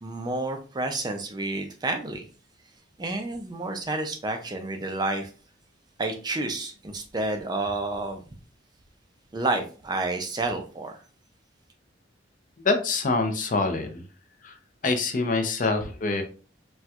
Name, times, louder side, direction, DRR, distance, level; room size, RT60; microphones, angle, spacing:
voice 1, 0.0-2.3 3.0-5.3 6.0-8.2 9.3-11.0, right 2 dB, 20° right, 0.4 m, -30 dB
voice 2, 12.6-14.0 14.4-14.5 14.8-16.2, left 3 dB, 45° left, 0.5 m, -25 dB
4.2 x 2.2 x 2.3 m
head